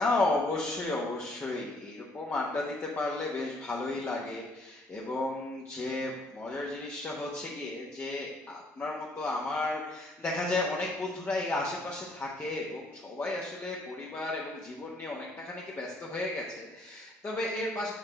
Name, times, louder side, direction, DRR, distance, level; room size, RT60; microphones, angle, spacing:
voice 1, 0.0-17.9, left 2 dB, 30° left, -4 dB, 1.0 m, -33 dB
6.5 x 3.2 x 5.0 m, 1.0 s
hypercardioid pair, 60°, 9 cm